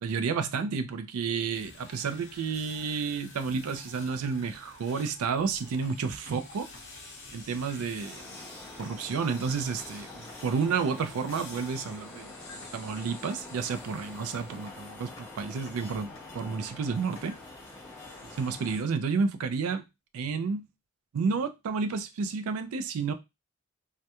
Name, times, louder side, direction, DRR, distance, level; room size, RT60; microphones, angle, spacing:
voice 1, 0.0-6.7 7.3-8.4 8.8-17.4 18.2-19.8 20.1-20.7 21.1-23.1, right 5 dB, 80° right, 0.4 m, -31 dB
sound 1, 1.5-18.8, left 3 dB, 55° left, 0.8 m, -49 dB
Stream, 4.1-4.2 5.3-5.4 6.5-6.6 7.7-7.8 8.9-9.0 10.1-10.2 11.3-11.4 12.5-12.6 13.7-13.8 14.9-15.0 16.1-16.2 17.3-17.4, left 9 dB, 85° left, 0.3 m, -50 dB
sound 2, 8.0-18.8, left 2 dB, 10° left, 0.3 m, -47 dB
2.2 x 2.1 x 2.8 m
head